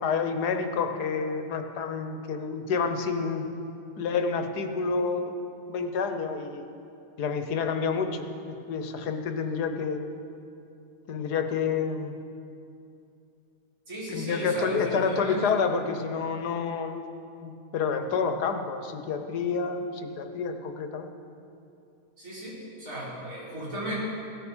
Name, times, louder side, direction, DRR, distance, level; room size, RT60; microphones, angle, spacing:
voice 1, 0.0-3.4 4.0-5.3 5.7-6.7 7.2-10.0 11.1-12.1 14.1-17.0 17.4-21.1, left 5 dB, 85° left, 7 dB, 1.5 m, -29 dB
voice 2, 13.9-15.6 22.2-23.9, equal, 55° right, -7 dB, 4.5 m, -35 dB
17.0 x 9.4 x 6.3 m, 2.6 s
omnidirectional pair, 1.7 m